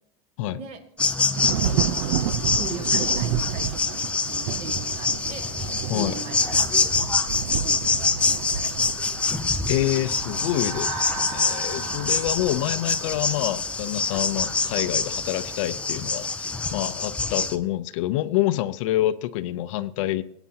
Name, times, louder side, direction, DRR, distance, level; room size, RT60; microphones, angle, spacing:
sound 1, 1.0-17.6, left 4 dB, 5° left, 0.5 m, -26 dB
Thunder / Rain, 1.3-16.9, right 10 dB, 60° right, 0.6 m, -32 dB
voice 1, 2.6-5.5 5.9-6.7 7.5-9.0, right 5 dB, 35° right, 7 dB, 1.8 m, -39 dB
voice 2, 9.7-16.3 16.7-20.2, left 14 dB, 60° left, 13 dB, 0.7 m, -27 dB
sound 2, 9.8-14.4, right 4 dB, 15° right, 3.0 m, -38 dB
18.5 x 9.0 x 2.8 m, 0.76 s
supercardioid pair, 165°, 18 cm